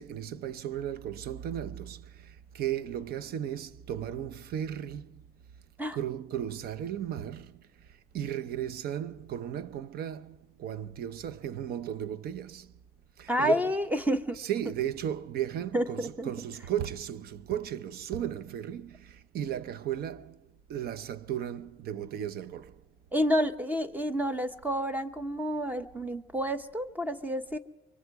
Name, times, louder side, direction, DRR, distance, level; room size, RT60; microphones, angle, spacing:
voice 1, 0.0-5.2 5.9-7.6 8.1-12.7 13.2-13.7 14.4-20.4 20.7-22.8, right 10 dB, 65° right, 0.9 m, -35 dB
voice 2, 13.3-14.4 15.7-16.3 23.1-27.6, equal, 10° right, 1.1 m, -29 dB
24.0 x 23.0 x 4.8 m
cardioid pair, 110°, 17 cm